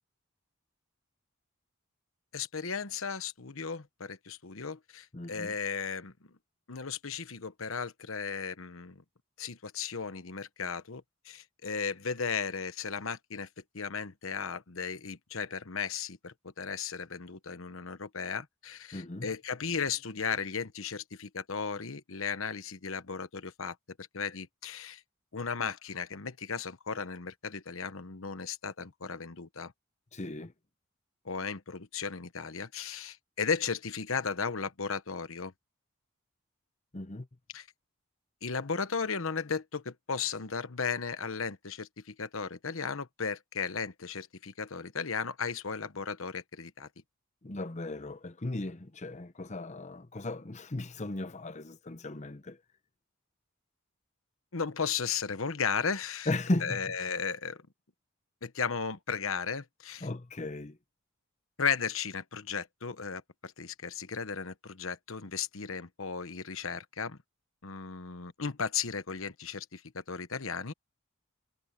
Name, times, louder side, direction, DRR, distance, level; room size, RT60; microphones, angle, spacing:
voice 1, 2.3-6.3 6.7-9.0 9.4-13.5 13.7-25.0 25.3-29.7 31.2-35.5 37.5-37.7 38.4-46.9 54.5-56.3 56.6-57.6 58.4-60.1 61.6-67.2 67.6-70.7, left 6 dB, 75° left, 1.1 m, -35 dB
voice 2, 5.1-5.5 18.9-19.3 30.1-30.5 36.9-37.3 47.4-52.6 56.3-56.8 60.0-60.8, left 2 dB, 35° left, 0.9 m, -36 dB
head